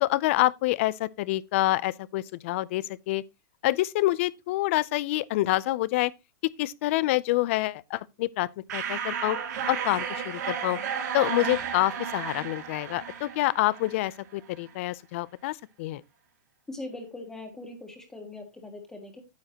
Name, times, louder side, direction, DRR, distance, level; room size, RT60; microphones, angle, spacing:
voice 1, 0.0-3.2 3.6-6.1 6.6-9.4 9.7-10.8 11.1-16.0, left 17 dB, 45° left, 0.5 m, -27 dB
sound 1, 8.7-14.2, right 7 dB, 65° right, 2.6 m, -33 dB
voice 2, 16.7-19.2, left 2 dB, 5° left, 1.6 m, -41 dB
9.4 x 8.8 x 2.9 m
supercardioid pair, 160°, 10 cm